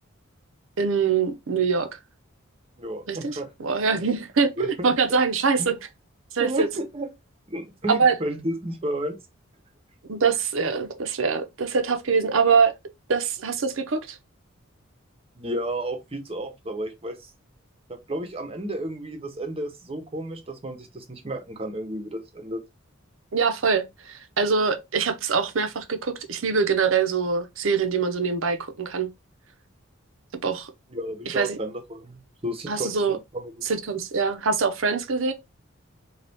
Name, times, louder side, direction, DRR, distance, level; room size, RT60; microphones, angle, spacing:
voice 1, 0.8-2.0 3.1-5.8 6.3-6.7 7.9-8.1 10.1-12.8 13.1-14.2 23.3-29.1 30.4-30.7 31.3-31.6 32.7-33.2 33.6-35.3, right 5 dB, 70° right, 0.7 m, -24 dB
voice 2, 2.8-3.5 4.6-5.2 5.6-5.7 6.4-7.1 7.5-9.2 15.4-17.3 17.9-22.6 30.9-33.7, right 1 dB, 30° right, 0.8 m, -32 dB
4.0 x 2.4 x 3.4 m
head